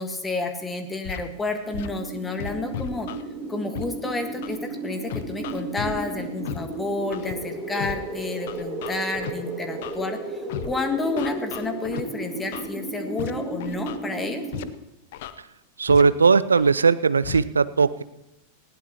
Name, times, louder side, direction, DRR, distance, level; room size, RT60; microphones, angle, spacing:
voice 1, 0.0-3.1 3.5-14.4, left 2 dB, 10° left, 6 dB, 1.6 m, -30 dB
Scratching (performance technique), 1.0-1.2 1.7-1.9 2.4-3.2 3.7-3.8 4.4-4.6 5.1-5.9 6.4-6.6 7.1-7.3 7.8-7.9 8.5-9.3 9.8-10.0 10.5-10.7 11.2-12.0 12.5-12.7 13.2-13.3 13.6-14.0 14.5-14.6 15.1-15.3 15.9-16.0 16.5-16.7 17.2-17.4, left 12 dB, 50° left, 0.7 m, -34 dB
sound 1, 1.6-14.7, right 2 dB, 30° right, 2.3 m, -34 dB
voice 2, 15.8-18.0, right 5 dB, 75° right, 16 dB, 0.5 m, -18 dB
19.5 x 16.0 x 2.9 m, 0.90 s
figure-of-eight pair, 90°, 0 cm